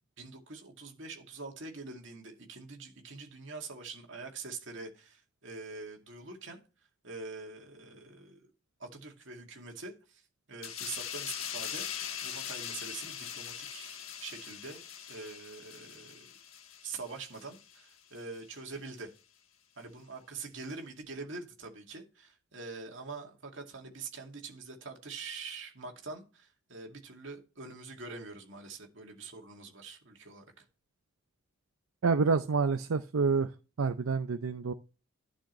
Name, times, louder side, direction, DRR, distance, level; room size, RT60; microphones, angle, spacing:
voice 1, 0.2-6.6 7.0-8.5 8.8-10.2 10.5-11.9 12.2-16.3 16.8-19.1 19.8-30.7, right 4 dB, 60° right, 2.3 m, -44 dB
sound 1, 10.6-17.8 18.2-18.4, left 9 dB, 80° left, 1.3 m, -41 dB
voice 2, 32.0-33.5 33.8-34.7, right 4 dB, 80° right, 0.6 m, -28 dB
11.5 x 6.3 x 3.1 m
head